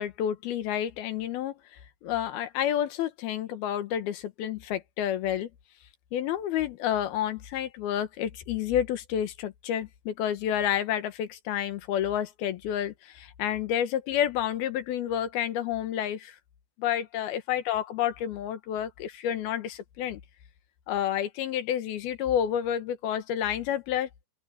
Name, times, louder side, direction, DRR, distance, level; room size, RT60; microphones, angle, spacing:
voice 1, 0.0-5.5 6.1-16.4 16.8-20.2 20.9-24.1, left 10 dB, 80° left, 3.2 m, -29 dB
open air
omnidirectional pair, 4.3 m